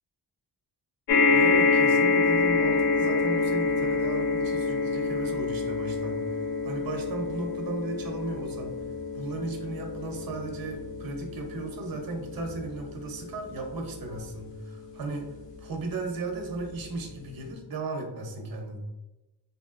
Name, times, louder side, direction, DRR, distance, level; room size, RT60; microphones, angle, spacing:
sound 1, 1.1-15.6 16.4-16.5 16.7-16.8, left 4 dB, 85° left, 0.7 m, -27 dB
voice 1, 1.3-6.4 6.6-8.7 9.1-15.3 15.6-18.8, right 3 dB, 55° right, 2 dB, 0.7 m, -36 dB
3.5 x 2.6 x 2.4 m, 1.1 s
wide cardioid pair, 100°, 42 cm